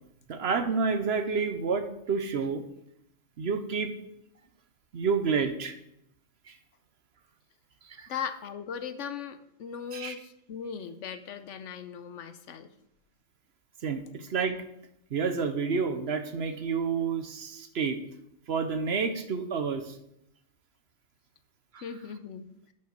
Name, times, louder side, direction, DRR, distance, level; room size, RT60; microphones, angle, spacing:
voice 1, 0.3-2.6 3.4-3.9 4.9-5.7 6.5-6.6 7.8-8.1 9.9-10.1 13.8-14.6 15.1-18.0 18.5-20.0 21.7-21.8, right 5 dB, 60° right, 8 dB, 1.0 m, -29 dB
voice 2, 8.1-12.7 21.8-22.5, left 7 dB, 70° left, 10 dB, 1.0 m, -38 dB
10.5 x 5.5 x 5.2 m, 0.78 s
omnidirectional pair, 1.3 m